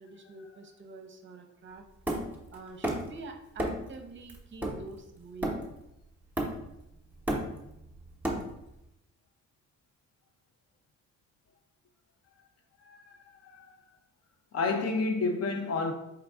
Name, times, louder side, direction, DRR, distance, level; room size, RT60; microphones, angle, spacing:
voice 1, 0.0-1.8 2.5-5.6, right 3 dB, 40° right, 0.6 m, -46 dB
Hammer, 2.1-3.2 3.6-3.9 4.3-5.9 6.4-6.8 7.1-8.8, right 1 dB, 5° right, 0.8 m, -33 dB
voice 2, 12.8-13.7 14.5-15.9, left 3 dB, 55° left, 0.6 m, -31 dB
4.5 x 2.5 x 3.4 m
cardioid pair, 90°, 30 cm